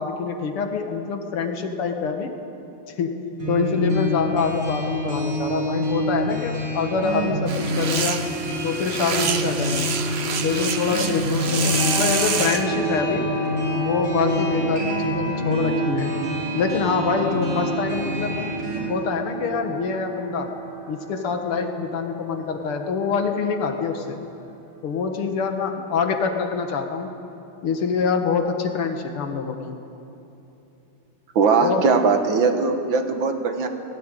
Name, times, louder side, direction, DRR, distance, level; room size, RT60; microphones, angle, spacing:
voice 1, 0.0-2.3 3.0-3.2 3.5-8.2 8.6-10.0 10.4-13.2 13.7-16.2 16.5-18.5 18.9-20.5 20.9-24.2 24.8-27.1 27.6-29.8 31.6-31.9, left 5 dB, 80° left, 4 dB, 2.4 m, -25 dB
sound 1, 3.4-18.8, equal, 80° right, 5.4 m, -27 dB
sound 2, 7.5-12.7, right 6 dB, 45° right, 0.8 m, -27 dB
sound 3, 11.3-25.4, right 4 dB, 60° left, 4.3 m, -32 dB
voice 2, 31.4-33.7, right 5 dB, 65° right, 6 dB, 2.0 m, -20 dB
17.5 x 17.5 x 9.1 m, 2.9 s
omnidirectional pair, 2.4 m